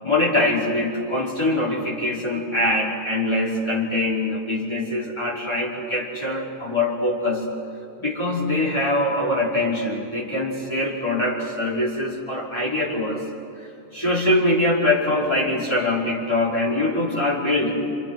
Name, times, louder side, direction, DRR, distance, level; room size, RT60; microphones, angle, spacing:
voice 1, 0.0-7.5 8.0-13.2 13.6-13.7 13.9-17.7, left 1 dB, 25° left, -5 dB, 5.5 m, -23 dB
29.5 x 27.0 x 6.4 m, 2.7 s
omnidirectional pair, 1.1 m